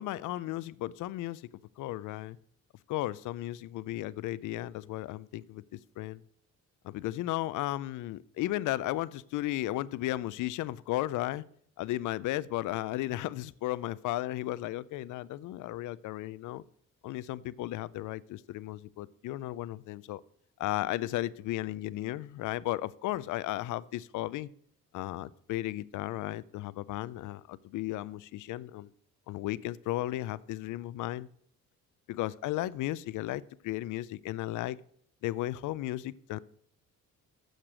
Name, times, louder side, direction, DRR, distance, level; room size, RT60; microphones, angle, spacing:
voice 1, 0.0-1.5 1.8-2.4 2.9-6.2 6.8-11.4 11.8-16.6 17.0-20.2 20.6-24.5 24.9-28.9 29.3-31.3 32.1-34.8 35.2-36.4, left 15 dB, 80° left, 19 dB, 0.5 m, -35 dB
8.9 x 6.6 x 6.1 m, 0.65 s
cardioid pair, 90°, 30 cm